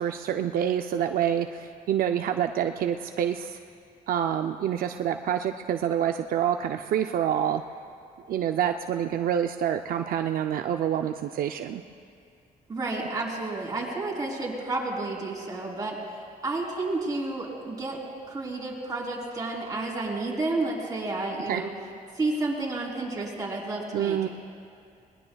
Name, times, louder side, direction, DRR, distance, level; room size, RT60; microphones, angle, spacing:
voice 1, 0.0-3.6 4.1-7.6 8.3-11.8 21.5-21.6 23.9-24.3, right 9 dB, 75° right, 6 dB, 0.5 m, -27 dB
voice 2, 12.7-16.0 16.4-18.0 18.3-21.7 22.1-24.3, right 2 dB, 25° right, -3 dB, 3.4 m, -31 dB
21.5 x 20.0 x 2.3 m, 2.4 s
cardioid pair, 110°, 15 cm